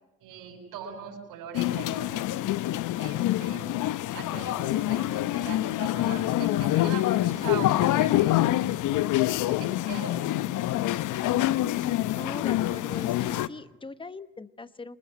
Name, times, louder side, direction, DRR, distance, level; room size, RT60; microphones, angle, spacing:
voice 1, 0.2-2.3 3.0-3.7 4.1-8.7 9.3-10.6, right 6 dB, 65° right, -1 dB, 7.7 m, -41 dB
sound 1, 1.5-13.5, left 15 dB, 55° left, 0.8 m, -26 dB
voice 2, 12.2-15.0, left 3 dB, 15° left, 13 dB, 1.1 m, -40 dB
27.5 x 20.5 x 8.8 m, 1.0 s
hypercardioid pair, 70°, 37 cm